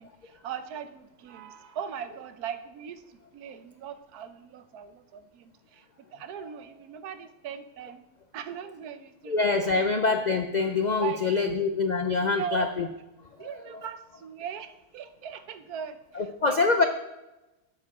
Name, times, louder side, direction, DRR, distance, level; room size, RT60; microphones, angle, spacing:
voice 1, 0.0-8.0 8.3-10.0 11.0-11.6 12.2-12.7 13.4-16.9, right 8 dB, 80° right, 10 dB, 1.3 m, -40 dB
voice 2, 9.3-12.9 13.4-13.5 16.2-16.8, left 4 dB, 75° left, 6 dB, 0.4 m, -25 dB
11.5 x 7.8 x 3.6 m, 1.0 s
omnidirectional pair, 1.6 m